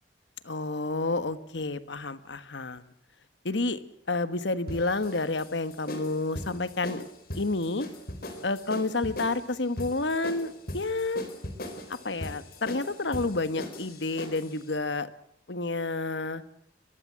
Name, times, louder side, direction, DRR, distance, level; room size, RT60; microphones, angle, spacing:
voice 1, 0.4-2.9 3.4-3.8 4.1-7.0 7.3-7.9 8.4-11.3 11.9-15.1 15.5-16.4, left 3 dB, 70° left, 13 dB, 1.4 m, -30 dB
sound 1, 4.7-14.6, left 1 dB, 50° left, 4.0 m, -40 dB
22.5 x 22.5 x 7.6 m, 0.68 s
head